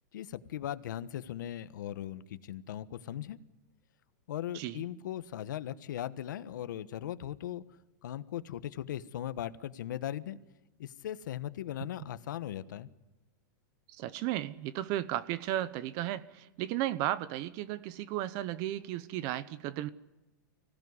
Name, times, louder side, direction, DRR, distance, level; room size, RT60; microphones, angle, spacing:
voice 1, 0.1-3.4 4.3-7.6 8.0-10.4 10.8-12.9, left 11 dB, 75° left, 13 dB, 1.2 m, -38 dB
voice 2, 13.9-19.9, right 13 dB, 35° right, 16 dB, 0.8 m, -34 dB
25.0 x 17.0 x 9.7 m, 1.1 s
supercardioid pair, 165°, 10 cm